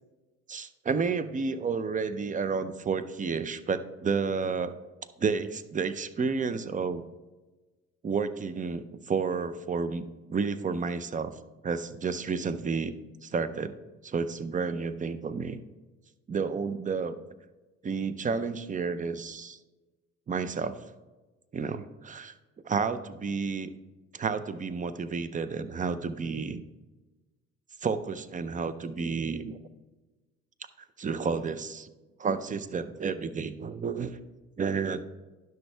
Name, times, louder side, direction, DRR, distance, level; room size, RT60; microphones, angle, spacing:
voice 1, 0.5-4.7 5.2-7.0 8.0-11.3 11.6-12.9 13.2-13.8 14.0-15.6 16.3-17.1 17.8-19.6 20.3-20.8 21.5-22.3 22.6-23.7 24.1-26.6 27.8-29.6 31.0-31.9 32.2-34.1 34.6-35.0, right 5 dB, 25° right, 13 dB, 0.6 m, -31 dB
10.5 x 6.1 x 3.3 m, 1.2 s
supercardioid pair, 85°, 32 cm